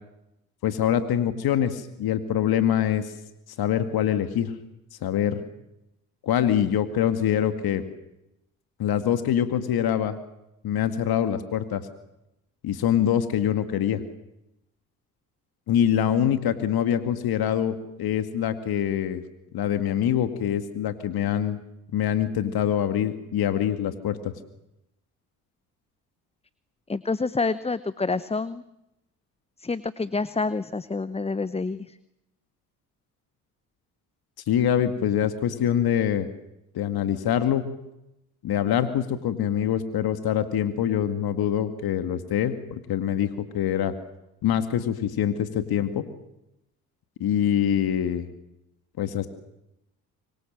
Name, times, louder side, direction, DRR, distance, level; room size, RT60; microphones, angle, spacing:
voice 1, 0.6-3.1 3.6-4.5 5.0-5.4 6.2-7.8 8.8-10.2 10.6-11.9 12.6-14.0 15.7-19.2 19.5-21.6 21.9-24.3 34.5-36.3 36.7-37.6 38.4-43.9 44.4-46.1 47.2-48.3 49.0-49.3, left 10 dB, 60° left, 9 dB, 2.1 m, -24 dB
voice 2, 26.9-28.6 29.6-31.8, left 3 dB, 15° left, 16 dB, 0.9 m, -27 dB
25.0 x 24.0 x 7.6 m, 0.88 s
hypercardioid pair, 55°, 42 cm